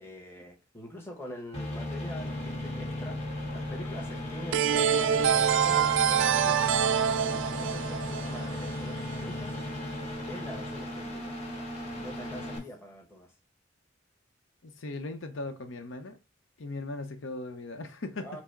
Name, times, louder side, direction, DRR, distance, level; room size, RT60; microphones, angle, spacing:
voice 1, 0.0-9.6 10.2-11.7 12.0-13.3 18.2-18.4, left 1 dB, 10° left, 1.1 m, -45 dB
sound 1, 1.5-12.6, left 1 dB, 30° left, 1.4 m, -36 dB
sound 2, 4.5-9.2, right 8 dB, 65° right, 0.4 m, -26 dB
voice 2, 14.6-16.2 16.6-18.4, left 2 dB, 70° left, 0.8 m, -38 dB
5.9 x 2.0 x 4.5 m
head